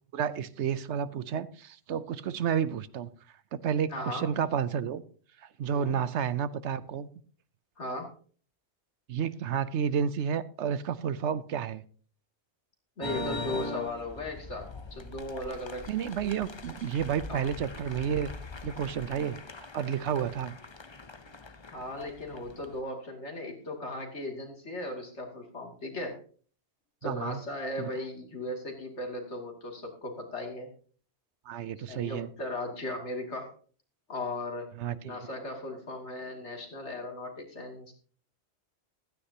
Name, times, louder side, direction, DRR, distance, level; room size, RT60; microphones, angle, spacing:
voice 1, 0.1-3.1 3.5-5.0 5.6-7.1 9.1-11.8 15.9-18.3 18.6-19.4 19.7-20.5 27.0-27.4 27.8-27.9 31.5-32.3 34.8-35.2, right 8 dB, 80° right, 16 dB, 1.0 m, -31 dB
voice 2, 3.9-4.3 5.7-6.0 7.8-8.1 13.0-15.9 17.3-17.5 21.7-26.2 27.0-30.7 31.8-33.5 34.1-34.7 35.0-37.9, left 1 dB, 80° left, 2 dB, 2.9 m, -37 dB
sound 1, 13.0-22.8, left 2 dB, 30° left, 0.7 m, -41 dB
15.5 x 13.0 x 2.9 m, 0.43 s
omnidirectional pair, 1.2 m